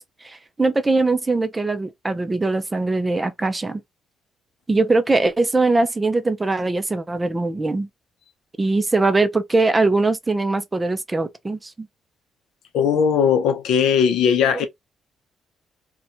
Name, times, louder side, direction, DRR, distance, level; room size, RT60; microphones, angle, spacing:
voice 1, 0.0-3.8 4.7-7.9 8.6-11.9, right 3 dB, 20° right, 0.4 m, -21 dB
voice 2, 12.7-14.7, left 7 dB, 80° left, 0.5 m, -18 dB
2.8 x 2.2 x 2.4 m
cardioid pair, 90°, 0 cm